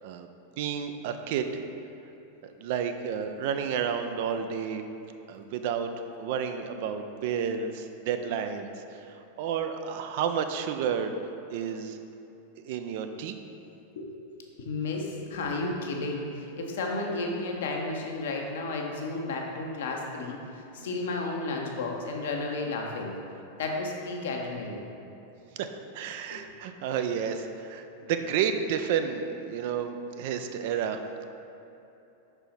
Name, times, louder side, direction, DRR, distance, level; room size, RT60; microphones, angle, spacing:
voice 1, 0.6-1.6 2.4-4.8 5.3-5.9 6.2-8.7 9.4-11.1 11.5-12.0 12.6-13.4 25.6-31.0, right 7 dB, 50° right, 7 dB, 0.3 m, -31 dB
voice 2, 14.6-23.1 23.6-24.8 26.3-26.4, left 3 dB, 60° left, 1 dB, 0.8 m, -32 dB
5.5 x 4.4 x 4.2 m, 3.0 s
figure-of-eight pair, 90°, 0 cm